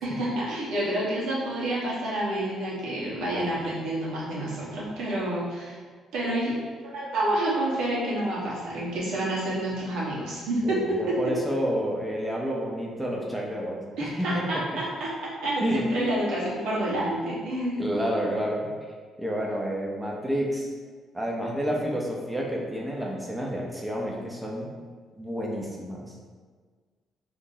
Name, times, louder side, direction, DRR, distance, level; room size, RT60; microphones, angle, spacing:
voice 1, 0.0-5.8 6.1-11.3 14.0-18.0, right 1 dB, 85° right, -7 dB, 1.1 m, -29 dB
voice 2, 10.6-14.5 15.6-16.3 17.8-18.7 19.2-20.7 21.1-24.7 25.2-26.1, equal, 5° right, -2 dB, 0.7 m, -29 dB
2.8 x 2.6 x 3.9 m, 1.5 s
cardioid pair, 80°, 0 cm